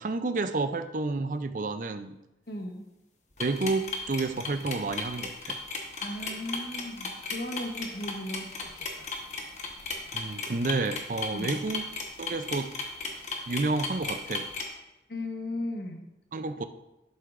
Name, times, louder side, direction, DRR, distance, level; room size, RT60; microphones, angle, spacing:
voice 1, 0.0-2.2 3.4-5.6 10.1-11.8 12.2-12.7 13.5-14.5 16.3-16.6, right 3 dB, 45° right, 9 dB, 0.5 m, -30 dB
voice 2, 2.5-2.9 6.0-9.1 11.3-11.6 15.1-16.1, left 1 dB, 60° left, 3 dB, 1.2 m, -37 dB
sound 1, 3.4-14.6, left 4 dB, 40° left, 1.1 m, -35 dB
11.0 x 7.8 x 2.5 m, 0.91 s
head